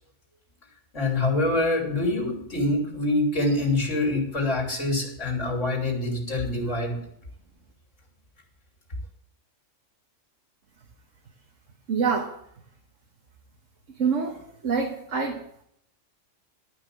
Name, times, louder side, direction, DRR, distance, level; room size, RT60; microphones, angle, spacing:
voice 1, 0.9-7.0, left 2 dB, 75° left, -1 dB, 3.4 m, -25 dB
voice 2, 11.9-12.3 14.0-14.4 14.6-15.4, right 5 dB, 80° right, 2 dB, 1.7 m, -25 dB
12.5 x 5.9 x 8.4 m, 0.71 s
omnidirectional pair, 1.3 m